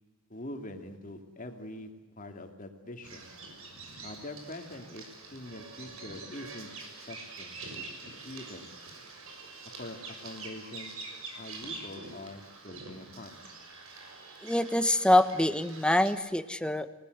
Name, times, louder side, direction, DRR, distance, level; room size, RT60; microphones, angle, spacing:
voice 1, 0.3-1.9 2.2-3.3 4.0-6.7 7.1-8.7 9.8-10.9 11.4-13.4, left 1 dB, 40° left, 5 dB, 2.9 m, -44 dB
Bird vocalization bird call bird song, 3.0-16.1, right 3 dB, 70° right, 6.7 m, -45 dB
voice 2, 14.4-16.9, left 1 dB, 5° left, 10 dB, 1.1 m, -25 dB
29.0 x 19.5 x 8.1 m, 1.2 s
head